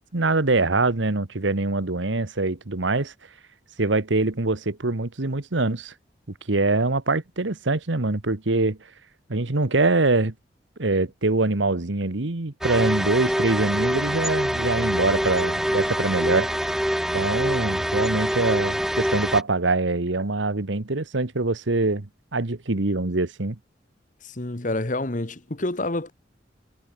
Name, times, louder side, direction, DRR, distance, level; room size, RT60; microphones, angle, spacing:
voice 1, 0.1-3.1 3.8-5.9 6.5-8.8 9.3-10.3 10.8-16.5 17.1-23.6, right 2 dB, 85° right, 1.4 m, -24 dB
sound 1, 12.6-19.4, equal, ahead, 0.6 m, -25 dB
voice 2, 24.2-26.1, left 2 dB, 45° left, 1.5 m, -28 dB
head